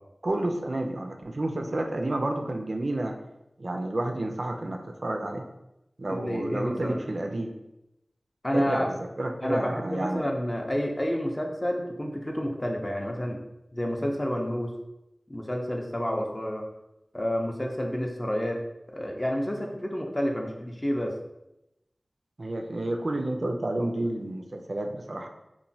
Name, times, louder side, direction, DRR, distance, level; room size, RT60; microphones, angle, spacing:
voice 1, 0.2-3.1 3.6-5.5 6.0-7.5 8.5-10.2 22.4-25.3, right 1 dB, 65° right, 3 dB, 0.3 m, -30 dB
voice 2, 6.1-7.0 8.4-8.9 9.4-13.4 13.7-14.7 15.3-16.7 17.1-18.6 18.9-21.1, equal, 25° left, 1 dB, 0.4 m, -29 dB
3.0 x 2.1 x 2.6 m, 0.91 s
wide cardioid pair, 60°, 0 cm